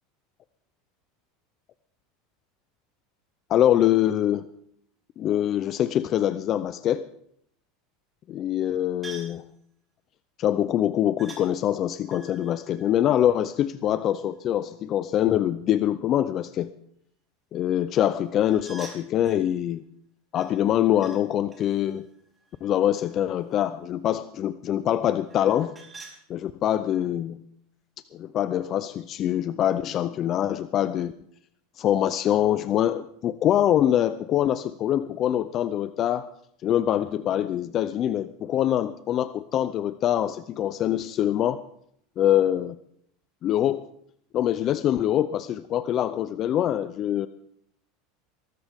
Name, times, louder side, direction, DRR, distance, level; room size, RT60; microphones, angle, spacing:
voice 1, 3.5-4.5 5.2-7.1 8.3-9.5 10.4-16.7 17.5-19.8 20.3-22.1 22.6-25.7 26.3-27.4 28.1-31.1 31.8-36.3 36.6-41.6 42.2-42.8 43.4-43.8 44.3-47.3, left 11 dB, 35° left, 13 dB, 0.5 m, -24 dB
sound 1, 9.0-9.4 11.2-11.5 12.1-13.9 18.4-19.5 20.3-21.2 21.5-23.4 25.3-26.2, right 4 dB, 15° right, 3.7 m, -47 dB
22.5 x 13.5 x 3.6 m, 0.70 s
supercardioid pair, 150°, 0 cm